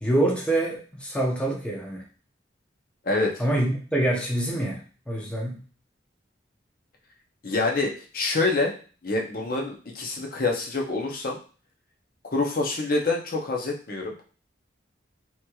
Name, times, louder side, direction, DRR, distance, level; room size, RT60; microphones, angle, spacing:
voice 1, 0.0-2.1 3.4-5.6, right 1 dB, 5° left, -3 dB, 0.7 m, -26 dB
voice 2, 3.1-3.4 7.4-8.7 9.0-11.4 12.3-14.1, left 3 dB, 50° left, 0 dB, 0.7 m, -26 dB
3.1 x 2.8 x 2.2 m, 0.38 s
head